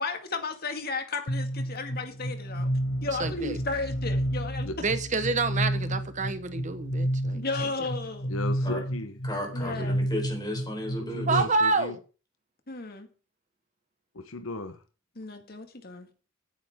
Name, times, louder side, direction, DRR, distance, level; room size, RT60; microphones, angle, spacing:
voice 1, 0.0-2.7 3.0-4.7 7.3-8.3 9.5-10.0 12.7-13.1 15.2-16.1, left 3 dB, 50° left, 2.1 m, -34 dB
sound 1, 1.3-11.4, equal, 65° left, 1.6 m, -31 dB
voice 2, 3.2-3.6 4.8-7.4 11.3-12.0, right 3 dB, 35° right, 1.1 m, -27 dB
voice 3, 8.3-9.2 11.1-11.9 14.1-14.8, left 2 dB, 85° left, 1.0 m, -36 dB
voice 4, 9.2-11.4, left 1 dB, 20° left, 4.1 m, -34 dB
15.5 x 9.3 x 3.7 m
head